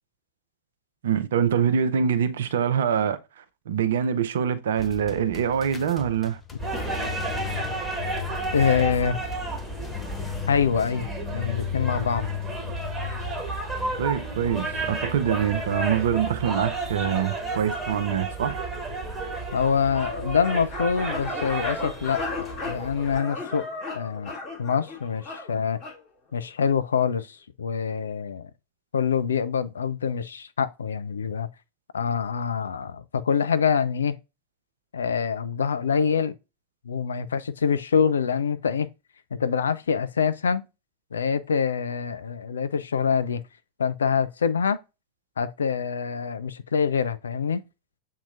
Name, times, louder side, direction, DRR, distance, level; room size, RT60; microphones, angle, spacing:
voice 1, 1.0-6.4 14.0-18.6, right 8 dB, 60° right, 0.5 m, -25 dB
sound 1, 4.8-10.6, left 4 dB, 15° left, 0.7 m, -40 dB
sound 2, 6.6-23.2, right 1 dB, 10° right, 1.4 m, -31 dB
voice 2, 8.5-9.2 10.5-12.3 19.5-23.6 23.9-24.3 24.6-25.8 26.3-28.5 28.9-31.5 31.9-34.1 34.9-36.4 36.8-38.9 39.3-40.7 41.1-43.4 43.8-44.8 45.4-47.6, left 6 dB, 70° left, 0.3 m, -25 dB
sound 3, 19.9-26.0, left 3 dB, 35° left, 1.8 m, -35 dB
7.2 x 2.8 x 2.5 m
figure-of-eight pair, 90°, 0 cm